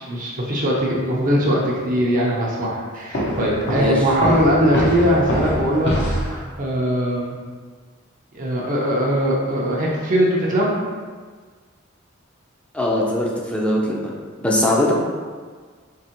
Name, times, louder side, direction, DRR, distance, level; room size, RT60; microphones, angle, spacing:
voice 1, 0.0-6.2 6.6-7.4 8.3-10.8, equal, 40° right, -4 dB, 0.6 m, -20 dB
Walk footsteps, 3.1-6.4, equal, 60° left, 0.7 m, -24 dB
voice 2, 12.7-14.1 14.4-14.9, left 1 dB, 5° left, -3 dB, 0.5 m, -21 dB
4.6 x 2.9 x 2.9 m, 1.5 s
head